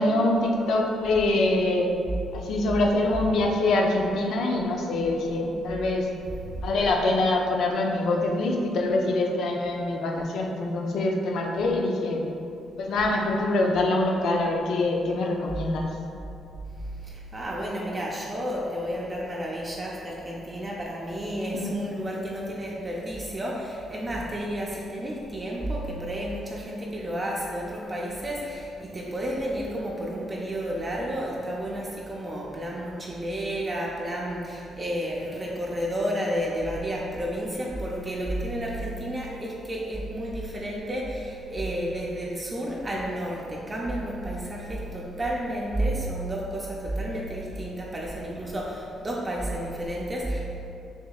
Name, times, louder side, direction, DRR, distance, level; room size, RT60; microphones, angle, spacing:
voice 1, 0.0-1.9 2.3-6.1 6.6-12.2 12.8-15.9 21.5-21.7, left 2 dB, 75° left, 1 dB, 0.5 m, -24 dB
voice 2, 6.3-6.7 16.8-50.6, right 1 dB, 25° right, -3 dB, 0.5 m, -31 dB
6.0 x 2.6 x 2.3 m, 2.7 s
cardioid pair, 90°, 0 cm